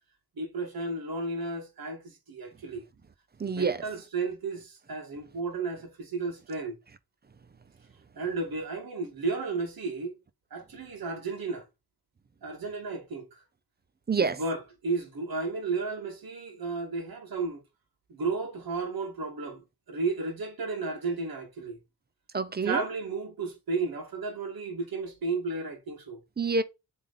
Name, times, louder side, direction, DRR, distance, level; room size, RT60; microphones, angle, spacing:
voice 1, 0.4-2.9 3.4-6.8 8.2-10.2 10.5-11.7 12.4-13.4 14.2-17.6 18.1-21.8 22.6-26.2, right 3 dB, 65° right, 2.2 m, -33 dB
voice 2, 3.4-3.8 14.1-14.4 22.3-22.8 26.4-26.6, right 4 dB, 25° right, 0.6 m, -27 dB
7.3 x 3.6 x 4.1 m
wide cardioid pair, 125°, 39 cm